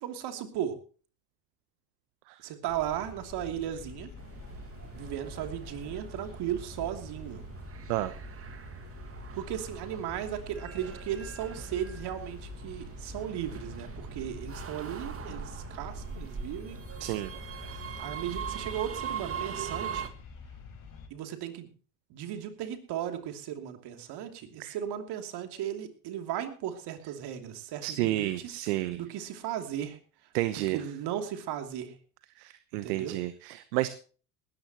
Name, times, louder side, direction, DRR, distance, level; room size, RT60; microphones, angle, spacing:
voice 1, 0.0-0.8 2.4-4.1 4.9-7.4 9.3-17.1 18.0-20.1 21.1-21.7 22.1-28.6 29.0-30.0 30.7-31.9 32.8-33.2, right 10 dB, 55° right, 6 dB, 2.9 m, -36 dB
sound 1, 2.7-21.1, left 5 dB, 45° left, 4.9 m, -47 dB
sound 2, 4.2-20.1, right 7 dB, 30° right, 1.7 m, -41 dB
voice 2, 17.0-17.3 24.6-24.8 27.8-29.0 30.3-30.8 32.4-33.9, right 16 dB, 70° right, 14 dB, 1.0 m, -31 dB
18.5 x 14.5 x 3.0 m, 0.40 s
hypercardioid pair, 80°, 47 cm